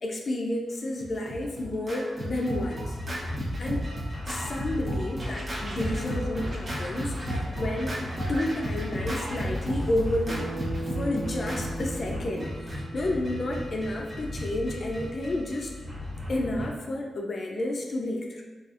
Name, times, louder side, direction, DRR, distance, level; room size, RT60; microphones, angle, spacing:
voice 1, 0.0-3.0 3.6-3.8 4.3-7.2 7.6-8.0 8.3-10.5 10.9-15.7 16.3-18.4, left 1 dB, 55° left, 0 dB, 0.3 m, -30 dB
Scratching (performance technique), 1.0-13.1, equal, 50° right, 0.6 m, -34 dB
sound 1, 2.4-16.7, left 1 dB, 20° right, 1.3 m, -37 dB
Bass guitar, 10.3-14.6, right 2 dB, 85° right, 0.7 m, -39 dB
2.6 x 2.4 x 2.4 m, 1.2 s
cardioid pair, 55°, 0 cm